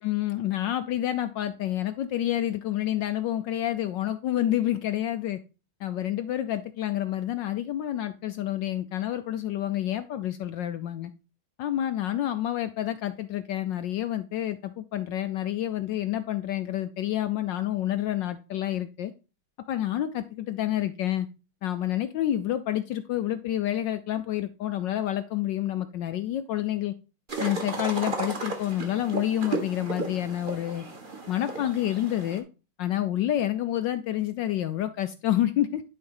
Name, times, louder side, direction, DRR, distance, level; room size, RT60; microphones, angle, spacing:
voice 1, 0.0-5.4 5.8-11.1 11.6-19.1 19.7-21.3 21.6-26.9 27.4-30.9 31.3-32.4 32.8-35.8, left 12 dB, 70° left, 10 dB, 1.1 m, -28 dB
sound 1, 27.3-32.4, right 3 dB, 25° right, 1.5 m, -34 dB
11.0 x 4.3 x 5.5 m, 0.32 s
omnidirectional pair, 2.4 m